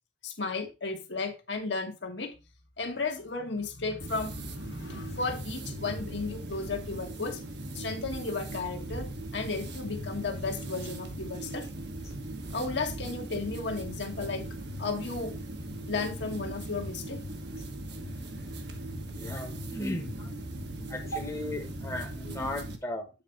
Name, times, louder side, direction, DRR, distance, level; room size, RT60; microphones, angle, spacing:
voice 1, 0.2-2.4 2.8-7.4 7.7-11.7 12.5-14.4 14.8-15.4 15.9-17.2 21.1-21.2, left 3 dB, 60° left, 1.4 m, -34 dB
sound 1, 4.0-22.8, right 1 dB, 55° right, 1.2 m, -39 dB
voice 2, 19.1-20.3 20.9-23.1, left 1 dB, 15° left, 1.1 m, -36 dB
8.6 x 4.1 x 4.5 m
head